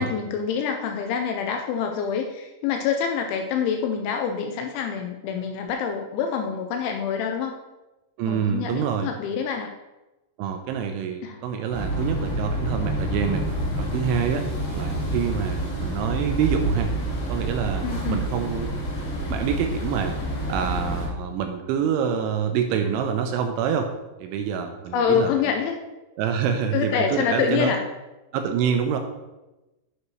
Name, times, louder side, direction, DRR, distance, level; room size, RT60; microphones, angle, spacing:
voice 1, 0.0-7.5 8.3-9.7 11.2-11.4 17.8-18.2 24.9-25.7 26.7-27.8, left 7 dB, 80° left, 4 dB, 2.8 m, -26 dB
voice 2, 8.2-9.1 10.4-13.5 13.8-14.5 14.7-16.9 17.3-18.7 19.0-20.2 20.5-23.9 24.2-25.3 26.2-27.7 28.3-29.0, right 7 dB, 85° right, 5 dB, 2.9 m, -26 dB
sound 1, 11.7-21.1, right 1 dB, 45° left, 2.7 m, -28 dB
9.7 x 6.5 x 3.1 m, 1.0 s
omnidirectional pair, 5.8 m